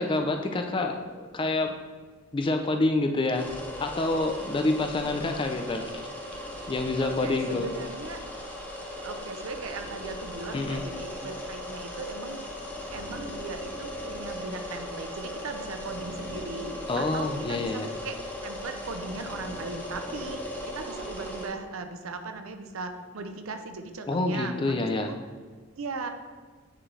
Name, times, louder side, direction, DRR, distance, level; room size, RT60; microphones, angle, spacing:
voice 1, 0.0-1.7 2.3-3.5 3.8-5.9 6.7-7.7 10.5-10.8 16.9-17.9 24.1-25.1, left 2 dB, 25° left, 5 dB, 0.4 m, -27 dB
sound 1, 3.3-21.5, left 1 dB, 5° left, 0.8 m, -38 dB
voice 2, 7.0-8.2 9.0-12.4 12.9-25.2 25.7-26.1, right 3 dB, 75° right, 7 dB, 0.6 m, -38 dB
8.8 x 3.7 x 3.2 m, 1.5 s
head